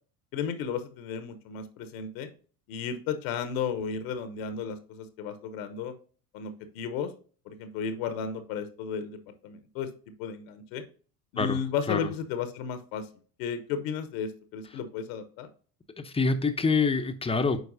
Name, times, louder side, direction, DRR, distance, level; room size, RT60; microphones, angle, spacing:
voice 1, 0.3-2.3 2.7-5.9 6.3-7.1 7.5-9.9 10.2-10.8 11.3-13.1 13.4-15.5, left 6 dB, 65° left, 9 dB, 0.9 m, -34 dB
voice 2, 16.0-17.6, left 4 dB, 15° left, 9 dB, 0.7 m, -26 dB
8.0 x 4.6 x 2.6 m, 0.40 s
hypercardioid pair, 65°, 46 cm